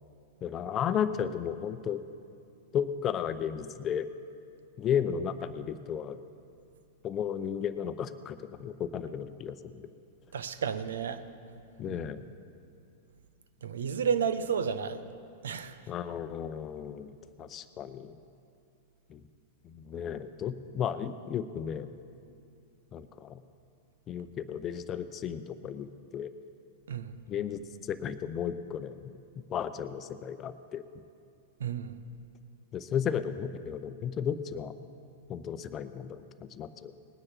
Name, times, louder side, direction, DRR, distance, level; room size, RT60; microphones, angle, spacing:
voice 1, 0.4-2.0 2.7-4.1 4.8-6.2 7.0-9.9 11.8-12.2 15.9-17.1 17.4-18.2 19.1-19.2 19.6-21.9 22.9-23.4 24.1-26.3 27.3-29.1 29.5-30.8 32.7-34.7 35.3-37.0, left 8 dB, 30° left, 11 dB, 0.7 m, -34 dB
voice 2, 10.3-11.2 11.9-12.0 13.6-15.0 15.4-15.7 26.9-27.2 31.6-32.0, right 7 dB, 80° right, 12 dB, 0.7 m, -31 dB
19.5 x 9.8 x 4.4 m, 2.5 s
hypercardioid pair, 110°, 0 cm